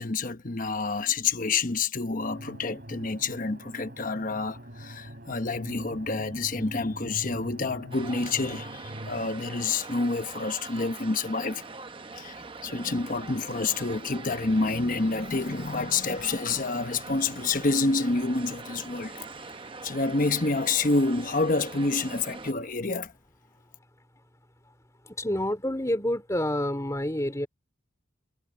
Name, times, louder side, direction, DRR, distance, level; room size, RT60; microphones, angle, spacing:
voice 1, 0.0-11.6 12.1-19.2 19.8-23.1, left 3 dB, 40° left, 1.0 m, -28 dB
sound 1, 2.2-9.3, equal, 45° right, 6.2 m, -43 dB
sound 2, 7.9-22.5, right 3 dB, 25° right, 0.8 m, -43 dB
voice 2, 25.0-27.5, left 1 dB, 15° left, 3.0 m, -28 dB
head